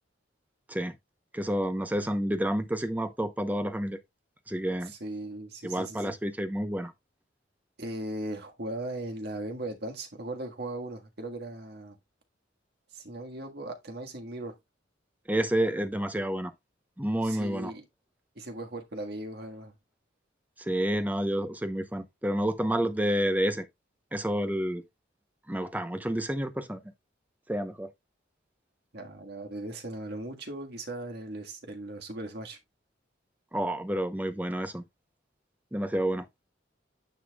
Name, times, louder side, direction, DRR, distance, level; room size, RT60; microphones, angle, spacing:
voice 1, 1.3-4.0 4.5-4.9 5.6-6.9 15.3-16.5 17.0-17.7 20.6-23.6 24.1-24.8 25.5-26.8 27.5-27.9 33.5-34.8 35.7-36.3, right 1 dB, 10° right, 0.8 m, -29 dB
voice 2, 4.9-6.2 7.8-12.0 12.9-14.5 17.2-17.8 18.3-19.7 28.9-32.6, right 1 dB, 60° right, 1.6 m, -38 dB
9.6 x 5.8 x 2.3 m
head